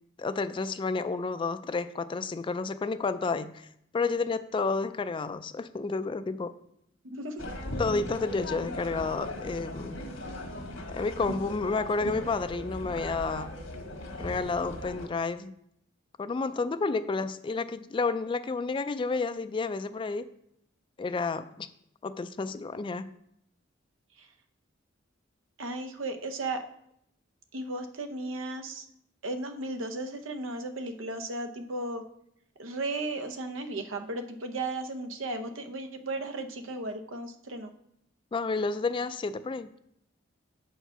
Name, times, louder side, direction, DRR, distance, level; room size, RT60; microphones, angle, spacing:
voice 1, 0.2-3.7 3.9-6.5 7.8-10.0 10.9-13.5 14.2-15.5 16.2-20.3 21.0-21.7 22.0-23.1 38.3-39.7, left 4 dB, 25° left, 12 dB, 0.3 m, -30 dB
voice 2, 7.0-7.4 24.2-24.3 25.6-26.6 27.5-28.8 29.2-32.0 32.6-37.7, right 2 dB, 80° right, 8 dB, 0.8 m, -35 dB
sound 1, 7.4-15.1, left 1 dB, 85° left, 1.4 m, -38 dB
6.9 x 4.7 x 5.5 m, 0.74 s
head